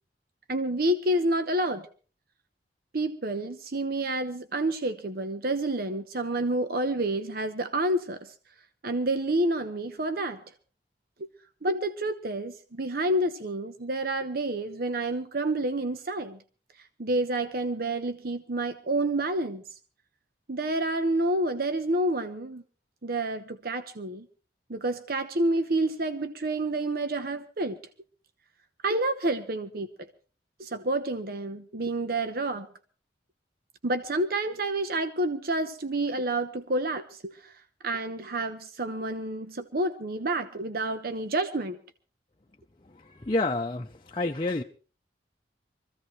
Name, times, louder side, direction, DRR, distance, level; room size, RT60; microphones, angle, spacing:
voice 1, 0.5-1.8 2.9-8.3 8.8-10.4 11.6-16.4 17.0-19.6 20.5-22.6 23.0-24.3 24.7-27.8 28.8-30.1 30.6-32.7 33.8-37.5 37.8-41.8, right 1 dB, 55° right, 1.0 m, -29 dB
voice 2, 42.8-44.6, left 2 dB, 30° left, 0.7 m, -29 dB
24.0 x 15.0 x 3.2 m
head